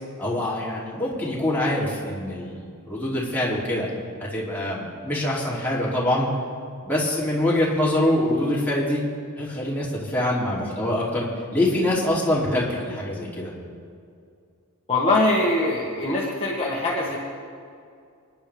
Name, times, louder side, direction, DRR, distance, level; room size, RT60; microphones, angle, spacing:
voice 1, 0.2-3.9 4.3-6.3 6.8-9.0 9.4-11.3 11.5-13.5, left 1 dB, 10° left, -7 dB, 2.9 m, -24 dB
voice 2, 14.9-17.2, left 2 dB, 25° left, -5 dB, 1.7 m, -22 dB
28.5 x 10.5 x 3.5 m, 2.3 s
head